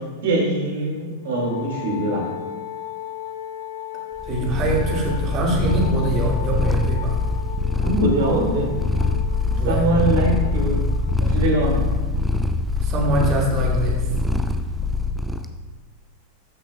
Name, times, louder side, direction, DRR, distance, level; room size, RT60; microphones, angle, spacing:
voice 1, 0.2-2.2 7.8-8.7 9.7-10.8 11.2-11.8, right 1 dB, 60° right, 0 dB, 2.0 m, -22 dB
Wind instrument woodwind instrument, 1.3-11.2, left 11 dB, 60° left, 0.5 m, -36 dB
Purr, 4.2-15.5, left 3 dB, 5° right, 0.5 m, -23 dB
voice 2, 4.2-7.2 9.6-9.9 12.8-14.1, right 2 dB, 35° right, -2 dB, 1.9 m, -23 dB
13.5 x 6.1 x 2.2 m, 1.3 s
figure-of-eight pair, 90°, 0 cm